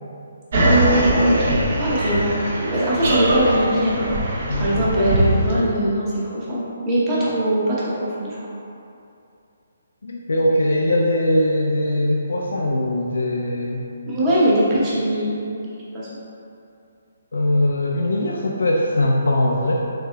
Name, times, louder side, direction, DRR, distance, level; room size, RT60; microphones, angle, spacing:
sound 1, 0.5-5.5, right 1 dB, 50° right, 0.6 m, -21 dB
voice 1, 0.6-2.4 2.7-4.1 4.6-8.4 14.1-15.5 15.9-16.1, right 1 dB, 20° right, -8 dB, 0.8 m, -21 dB
voice 2, 4.5-4.9 10.0-13.8 17.3-19.7, left 1 dB, 85° left, -2 dB, 0.3 m, -21 dB
3.6 x 3.4 x 2.2 m, 2.6 s
hypercardioid pair, 160°, 0 cm